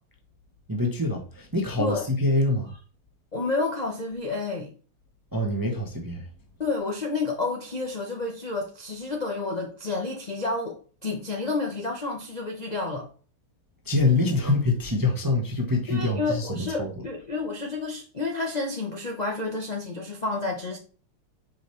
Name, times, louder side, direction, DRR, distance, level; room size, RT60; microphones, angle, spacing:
voice 1, 0.7-2.7 5.3-6.2 13.9-16.9, left 2 dB, 25° right, 0.4 m, -25 dB
voice 2, 3.3-4.7 6.6-13.1 15.9-20.8, left 3 dB, 80° left, 0.3 m, -30 dB
6.2 x 5.1 x 3.2 m
omnidirectional pair, 2.3 m